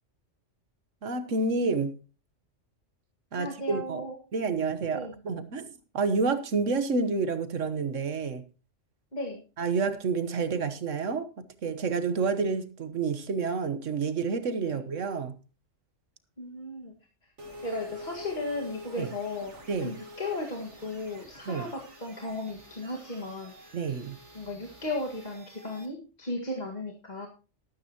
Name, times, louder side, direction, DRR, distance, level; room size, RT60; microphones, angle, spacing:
voice 1, 1.0-2.0 3.3-4.0 4.3-5.7 5.9-8.4 9.6-15.3 19.0-19.1 19.7-20.0 21.5-21.7 23.7-24.2, right 4 dB, 90° right, 1.5 m, -29 dB
voice 2, 3.3-4.1 4.9-5.2 9.1-9.4 14.7-14.8 16.4-16.9 17.6-19.5 19.8-23.5 24.3-27.3, left 2 dB, 35° left, 2.0 m, -35 dB
sound 1, 17.4-25.9, left 1 dB, 65° right, 2.7 m, -47 dB
13.0 x 12.5 x 2.9 m
omnidirectional pair, 1.3 m